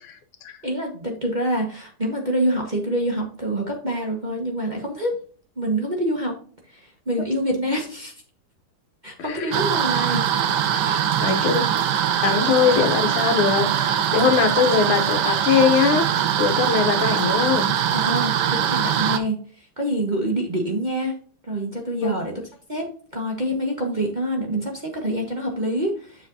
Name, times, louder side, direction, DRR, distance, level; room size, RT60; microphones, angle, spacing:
voice 1, 0.6-5.2 5.6-6.3 6.7-8.1 9.0-10.2 10.7-11.1 16.2-16.3 17.9-18.3 18.6-21.1 21.5-22.3 22.7-26.3, right 1 dB, 25° right, 0 dB, 1.3 m, -26 dB
voice 2, 9.2-9.5 11.2-11.6 12.2-16.1 16.4-17.7 22.0-22.1, left 6 dB, 80° left, 7 dB, 1.8 m, -21 dB
sound 1, 9.5-19.2, right 9 dB, 70° right, 1.1 m, -22 dB
7.5 x 6.8 x 2.7 m, 0.43 s
omnidirectional pair, 2.4 m